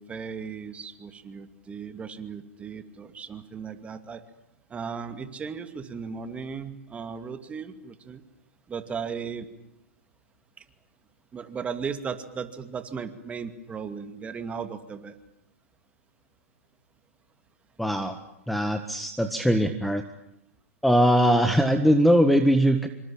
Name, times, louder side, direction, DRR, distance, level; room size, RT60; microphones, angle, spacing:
voice 1, 0.0-4.2 4.7-8.2 8.7-9.5 10.6-10.7 11.3-15.2, right 6 dB, 15° right, 9 dB, 2.5 m, -36 dB
voice 2, 17.8-18.2 18.5-20.0 20.8-22.9, equal, ahead, 8 dB, 1.6 m, -21 dB
26.5 x 25.0 x 8.9 m, 0.78 s
hypercardioid pair, 125°, 8 cm